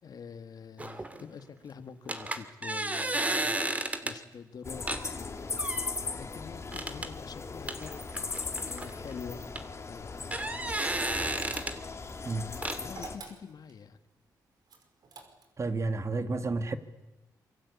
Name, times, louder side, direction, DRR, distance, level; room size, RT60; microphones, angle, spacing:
voice 1, 0.0-5.6 6.1-8.1 8.7-9.5 9.8-10.6 12.8-14.0, left 6 dB, 60° left, 2.1 m, -46 dB
sound 1, 0.8-1.2 2.1-4.2 4.9-5.0 5.6-5.9 6.7-7.1 7.7-9.2 9.6-9.7 10.1-11.8 12.6-12.8, right 2 dB, 20° right, 2.6 m, -33 dB
sound 2, 4.6-13.2, left 4 dB, 40° left, 3.3 m, -38 dB
sound 3, 11.4-12.1 12.9-13.8 14.7-15.7, right 4 dB, 65° right, 5.3 m, -47 dB
voice 2, 15.6-16.8, right 3 dB, 40° right, 2.4 m, -31 dB
27.0 x 24.0 x 8.7 m
cardioid pair, 80°, 7 cm